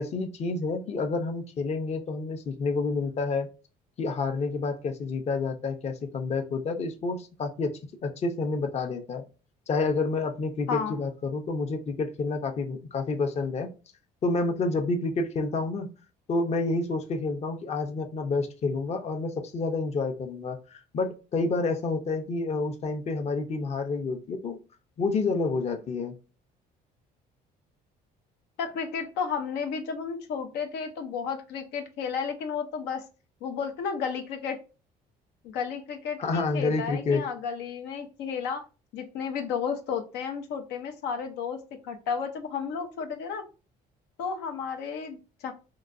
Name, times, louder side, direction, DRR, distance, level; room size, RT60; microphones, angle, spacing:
voice 1, 0.0-3.5 4.0-9.2 9.7-13.7 14.2-15.9 16.3-24.6 25.0-26.2 36.2-37.2, left 3 dB, 40° left, 5 dB, 0.6 m, -29 dB
voice 2, 28.6-33.0 33.4-34.6 35.4-38.6 38.9-41.6 41.8-43.4 44.2-45.5, left 6 dB, 85° left, 6 dB, 0.6 m, -32 dB
3.8 x 2.2 x 2.5 m, 0.33 s
cardioid pair, 110°, 17 cm